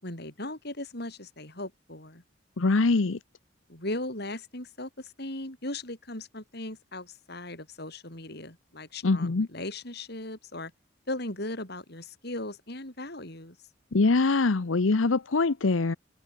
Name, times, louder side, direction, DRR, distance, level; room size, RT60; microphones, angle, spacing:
voice 1, 0.0-2.2 3.7-10.7 11.1-13.6, left 1 dB, 55° left, 7.0 m, -38 dB
voice 2, 2.6-3.2 9.0-9.5 13.9-16.0, left 3 dB, 85° left, 0.8 m, -23 dB
open air
head